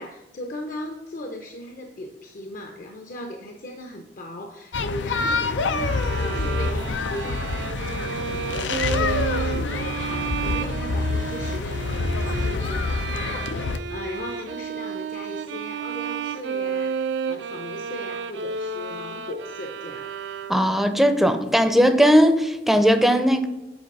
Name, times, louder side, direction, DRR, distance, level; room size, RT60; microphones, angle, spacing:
voice 1, 0.0-20.1, left 1 dB, 50° left, 4 dB, 0.7 m, -37 dB
sound 1, 4.7-13.8, left 3 dB, 90° left, 0.5 m, -26 dB
sound 2, 5.8-20.9, right 6 dB, 70° right, 0.4 m, -32 dB
voice 2, 20.5-23.5, equal, ahead, 8 dB, 0.5 m, -18 dB
7.9 x 3.9 x 5.3 m, 1.1 s
head